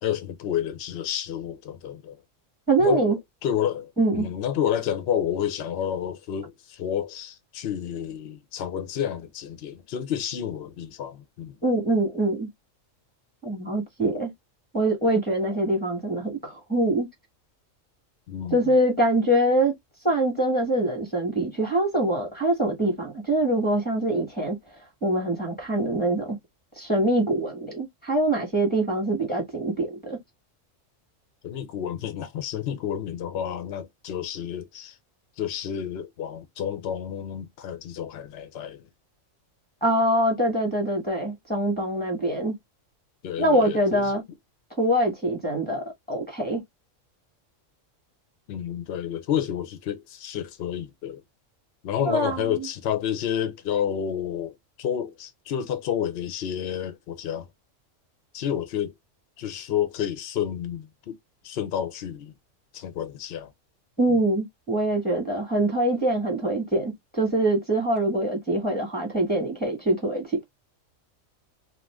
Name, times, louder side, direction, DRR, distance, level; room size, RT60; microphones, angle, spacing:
voice 1, 0.0-2.2 2.8-11.6 18.3-18.6 31.4-34.9 35.4-38.8 43.2-44.1 48.5-51.2 51.8-57.5 58.3-58.9 59.4-61.2 61.4-62.3 62.7-63.5, left 9 dB, 60° left, 0.8 m, -30 dB
voice 2, 2.7-3.2 4.0-4.3 11.6-12.5 13.4-14.3 14.7-17.1 18.5-19.7 20.0-24.6 25.0-26.4 26.8-30.2 39.8-42.6 43.4-44.2 44.8-46.6 52.0-52.6 64.0-70.4, right 1 dB, 10° left, 1.1 m, -24 dB
2.5 x 2.4 x 3.3 m
omnidirectional pair, 1.3 m